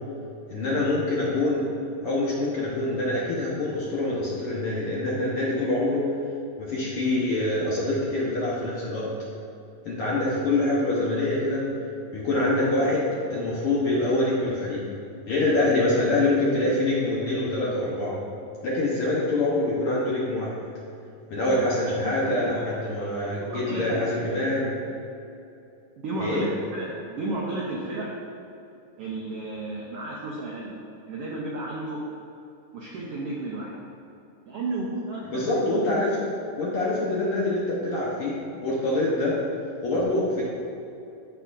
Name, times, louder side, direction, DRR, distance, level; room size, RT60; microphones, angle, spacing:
voice 1, 0.5-1.7 2.0-6.1 6.6-9.1 9.8-11.7 12.1-14.8 15.3-18.2 18.6-20.5 21.3-24.7 26.2-26.4 35.3-36.3 36.6-38.4 38.6-39.4 39.8-40.4, left 2 dB, 65° left, -6 dB, 1.4 m, -25 dB
voice 2, 22.0-22.6 23.4-24.0 26.0-28.1 29.0-30.7 31.1-32.0 32.7-33.7 34.5-35.6 36.9-37.1, right 2 dB, 85° right, -3 dB, 1.3 m, -33 dB
14.0 x 4.6 x 2.5 m, 2.8 s
omnidirectional pair, 3.8 m